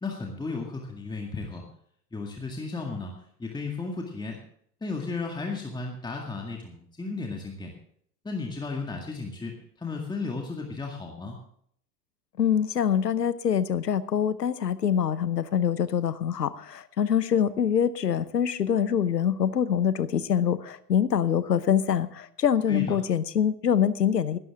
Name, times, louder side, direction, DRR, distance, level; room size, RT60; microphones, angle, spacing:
voice 1, 0.0-1.6 2.1-3.1 3.4-4.4 4.8-7.7 8.2-11.4 22.7-23.0, left 3 dB, 10° left, 1 dB, 2.0 m, -34 dB
voice 2, 12.4-24.4, left 8 dB, 90° left, 17 dB, 0.9 m, -25 dB
16.5 x 12.5 x 3.6 m, 0.65 s
hypercardioid pair, 90°, 47 cm